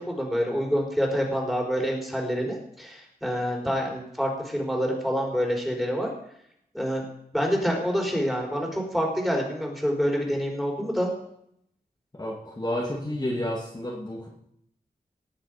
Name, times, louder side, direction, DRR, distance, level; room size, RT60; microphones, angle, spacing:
voice 1, 0.0-6.1 6.7-7.0 7.3-11.1, equal, ahead, 0 dB, 4.2 m, -27 dB
voice 2, 12.2-14.3, left 1 dB, 25° left, -4 dB, 2.4 m, -30 dB
18.5 x 7.4 x 5.2 m, 0.73 s
wide cardioid pair, 80°, 16 cm